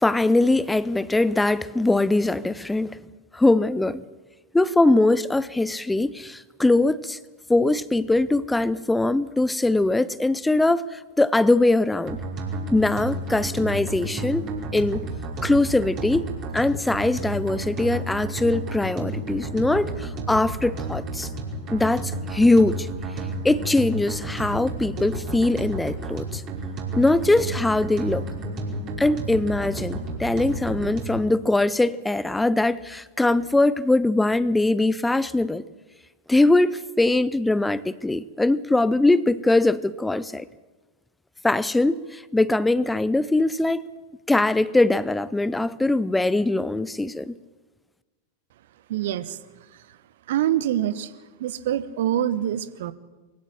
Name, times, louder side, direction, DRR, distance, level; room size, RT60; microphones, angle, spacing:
voice 1, 0.0-3.0 3.3-4.0 4.5-7.2 7.5-12.2 12.7-14.5 14.7-15.1 15.4-16.3 16.5-21.3 21.7-22.9 23.4-26.4 27.0-28.2 29.0-35.6 36.3-40.5 41.4-43.8 44.3-47.3, left 2 dB, 5° left, 0.6 m, -21 dB
sound 1, 12.1-31.3, right 2 dB, 35° right, 5.5 m, -32 dB
voice 2, 48.9-49.4 50.3-51.1 51.4-52.9, right 11 dB, 55° right, 1.1 m, -25 dB
23.0 x 16.5 x 8.8 m
figure-of-eight pair, 90°, 0 cm